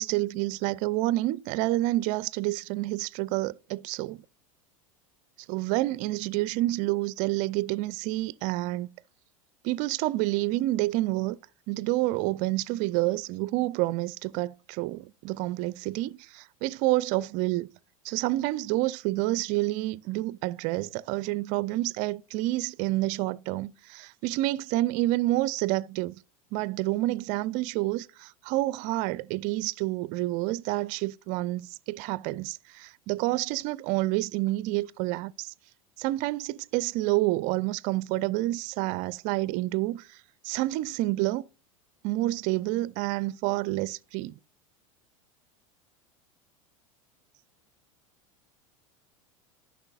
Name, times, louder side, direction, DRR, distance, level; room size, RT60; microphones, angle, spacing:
voice 1, 0.0-4.2 5.5-8.9 9.6-11.4 11.7-17.7 18.0-26.2 26.5-35.5 36.0-40.2 40.4-41.4 42.0-44.4, right 18 dB, 45° right, 0.4 m, -28 dB
13.5 x 5.9 x 2.4 m
hypercardioid pair, 85°, 18 cm